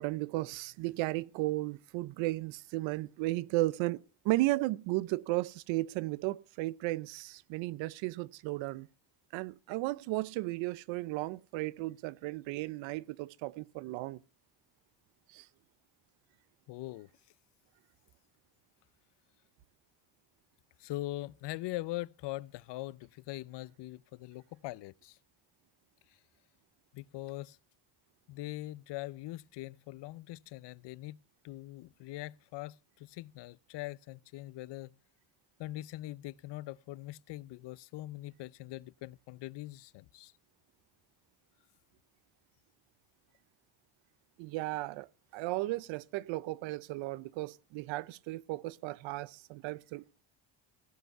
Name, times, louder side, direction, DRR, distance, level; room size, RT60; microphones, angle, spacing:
voice 1, 0.0-8.9 9.3-14.2 15.3-15.5 44.4-45.1 45.3-50.0, right 19 dB, 85° right, 0.8 m, -35 dB
voice 2, 16.7-17.1 20.8-25.2 26.9-27.6 28.3-35.0 35.6-40.3, left 17 dB, 65° left, 0.7 m, -42 dB
16.5 x 8.0 x 5.5 m
cardioid pair, 85°, 44 cm